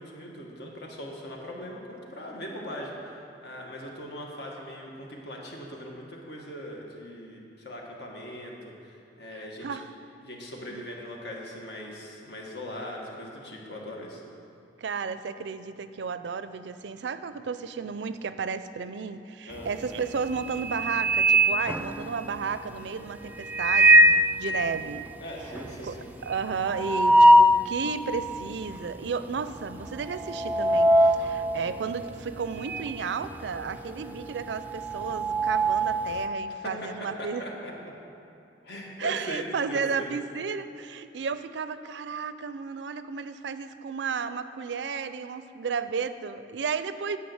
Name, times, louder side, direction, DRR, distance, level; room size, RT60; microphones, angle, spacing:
voice 1, 0.0-9.8 10.2-14.2 19.4-19.7 25.2-26.1 36.6-37.9 38.6-40.1, equal, 70° left, -1 dB, 1.7 m, -40 dB
voice 2, 9.4-9.9 10.7-10.8 14.8-25.1 25.8-26.0 26.2-37.4 39.0-47.2, right 5 dB, 85° right, 12 dB, 0.4 m, -33 dB
sound 1, 19.6-20.0 20.4-22.4 23.4-24.3 24.7-24.8 25.1-25.2 25.5-27.7 28.2-28.3 29.1-29.4 29.7-33.0 33.2-36.2, right 1 dB, 10° right, 0.4 m, -21 dB
9.6 x 5.7 x 7.9 m, 2.7 s
head